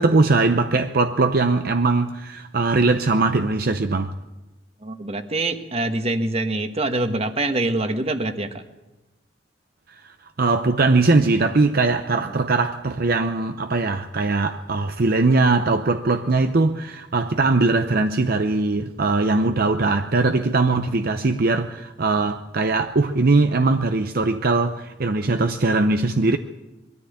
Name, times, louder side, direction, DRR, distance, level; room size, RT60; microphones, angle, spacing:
voice 1, 0.0-4.1 9.9-26.4, right 3 dB, 55° right, 0.7 m, -20 dB
voice 2, 4.8-8.6 12.2-12.3, right 2 dB, 35° right, 1.4 m, -25 dB
22.0 x 13.5 x 8.5 m
head